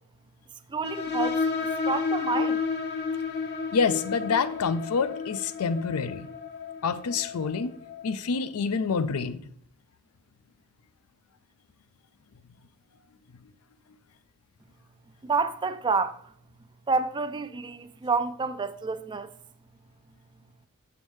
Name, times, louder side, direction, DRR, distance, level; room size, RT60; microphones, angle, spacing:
voice 1, 0.7-1.4 1.9-2.6 15.2-16.2 16.9-19.3, right 4 dB, 20° right, 0.3 m, -28 dB
sound 1, 0.8-8.1, left 5 dB, 50° left, 0.8 m, -31 dB
voice 2, 3.7-6.3 6.8-7.8 8.0-9.4, left 5 dB, 80° left, 0.4 m, -27 dB
7.0 x 6.3 x 3.2 m
head